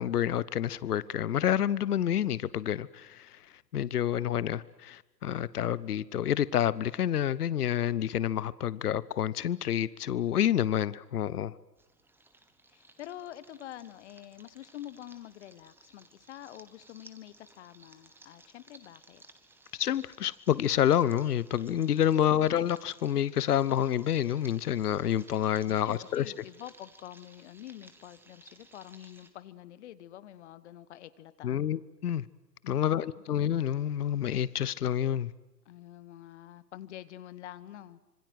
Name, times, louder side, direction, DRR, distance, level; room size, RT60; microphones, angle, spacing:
voice 1, 0.0-3.4 3.7-11.6 19.7-26.3 31.4-32.2 32.7-35.3, left 10 dB, 65° left, 1.0 m, -28 dB
sound 1, 11.8-29.3, right 2 dB, 5° right, 1.9 m, -58 dB
voice 2, 12.7-19.2 25.7-31.7 32.6-33.0 35.6-38.0, left 12 dB, 45° left, 1.4 m, -47 dB
26.5 x 25.5 x 7.8 m
figure-of-eight pair, 120°, 50 cm